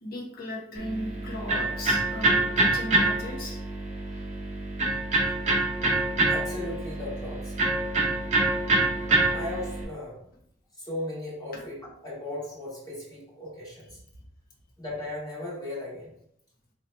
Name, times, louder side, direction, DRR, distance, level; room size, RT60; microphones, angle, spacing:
voice 1, 0.0-3.6 11.5-11.6, left 1 dB, 50° left, -1 dB, 1.0 m, -36 dB
Electric guitar, 0.7-9.8, right 2 dB, 35° right, 0.8 m, -26 dB
voice 2, 6.3-7.5 9.0-10.2 10.8-14.0 14.8-16.1, left 1 dB, 20° left, -6 dB, 1.4 m, -37 dB
2.9 x 2.7 x 4.4 m, 0.72 s
head